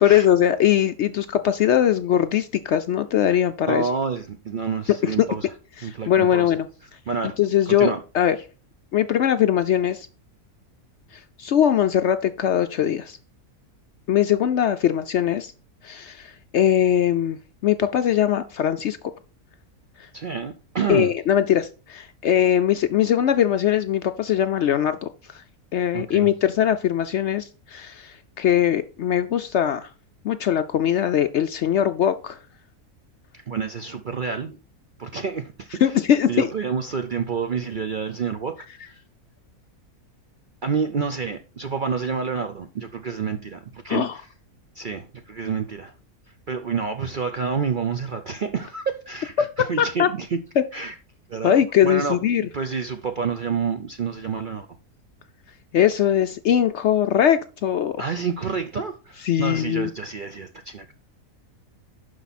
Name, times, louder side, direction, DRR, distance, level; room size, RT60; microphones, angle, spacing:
voice 1, 0.0-3.9 5.0-5.1 5.8-6.7 7.4-8.4 8.9-10.1 11.4-13.2 14.1-15.5 15.8-19.0 20.9-25.1 25.7-29.9 30.2-32.4 35.8-36.5 43.9-44.2 49.8-50.1 50.6-50.7 51.4-52.5 55.7-58.0 59.2-59.9, left 10 dB, 65° left, 0.7 m, -21 dB
voice 2, 3.7-5.5 5.8-6.5 7.1-7.4 7.7-8.0 20.1-21.1 25.9-26.3 33.3-34.6 35.0-35.9 36.3-39.0 40.6-44.3 44.8-45.9 46.5-50.4 50.7-50.9 51.3-54.7 58.0-60.9, right 5 dB, 55° right, 0.6 m, -28 dB
11.5 x 4.8 x 4.1 m
omnidirectional pair, 1.5 m